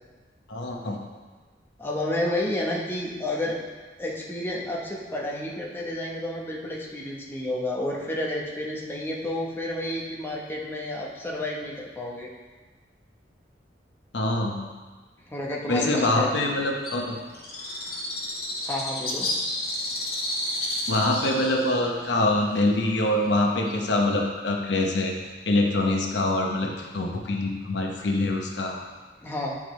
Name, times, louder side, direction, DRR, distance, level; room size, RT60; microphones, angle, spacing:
voice 1, 0.5-1.0 14.1-14.7 15.7-17.2 20.9-25.1 25.5-28.8, left 2 dB, 80° left, 1 dB, 0.9 m, -24 dB
voice 2, 1.8-3.6 4.0-12.3 15.3-16.3 18.6-19.3 29.2-29.6, left 1 dB, 15° left, -3 dB, 0.9 m, -30 dB
Bird, 16.8-24.1, left 1 dB, 60° left, 1.5 m, -32 dB
9.6 x 4.9 x 3.1 m, 1.3 s
head